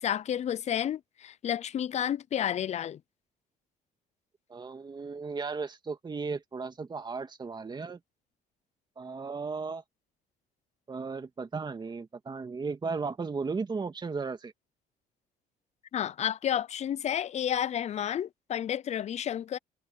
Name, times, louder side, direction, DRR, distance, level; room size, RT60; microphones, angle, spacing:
voice 1, 0.0-3.0 15.9-19.6, left 10 dB, 40° left, 0.5 m, -31 dB
voice 2, 4.5-8.0 9.0-9.8 10.9-14.5, right 4 dB, 25° right, 2.1 m, -35 dB
cardioid pair, 110°, 17 cm